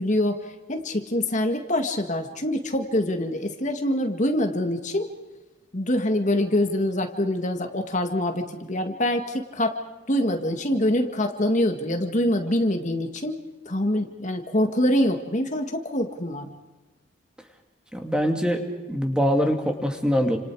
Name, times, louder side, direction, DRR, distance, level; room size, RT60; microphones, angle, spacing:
voice 1, 0.0-5.1 5.7-9.8 10.1-13.4 13.7-16.5, left 1 dB, 40° left, 5 dB, 1.9 m, -25 dB
voice 2, 17.9-18.6 18.9-20.4, equal, 5° right, 3 dB, 2.5 m, -23 dB
30.0 x 27.5 x 4.8 m, 1.1 s
head